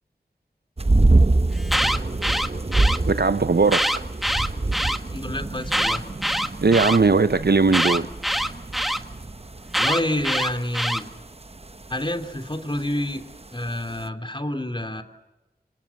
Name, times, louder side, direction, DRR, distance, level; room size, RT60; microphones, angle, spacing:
sound 1, 0.8-14.1, right 2 dB, 35° right, 1.0 m, -26 dB
Alarm, 1.5-3.0 3.6-5.0 5.6-7.0 7.7-9.0 9.7-11.0, equal, ahead, 1.8 m, -24 dB
voice 1, 3.1-3.9 6.6-8.1, right 4 dB, 75° right, 0.9 m, -18 dB
voice 2, 5.1-6.0 9.8-11.1 11.9-13.2 13.5-15.0, left 1 dB, 30° left, 3.1 m, -28 dB
27.0 x 26.5 x 7.2 m
wide cardioid pair, 40°, 17 cm